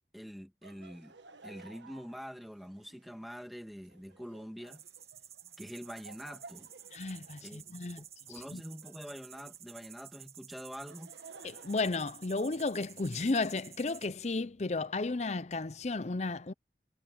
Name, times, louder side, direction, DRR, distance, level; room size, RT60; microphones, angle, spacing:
voice 1, 0.1-1.1 1.4-4.8 5.6-6.7 7.4-7.6 8.0-11.1, equal, ahead, 1.7 m, -45 dB
Laughter, 0.6-9.7 10.5-12.9, right 3 dB, 85° right, 1.4 m, -56 dB
sound 1, 4.7-14.1, right 10 dB, 35° right, 2.0 m, -52 dB
voice 2, 6.9-8.6 11.4-16.5, left 3 dB, 40° left, 0.6 m, -34 dB
head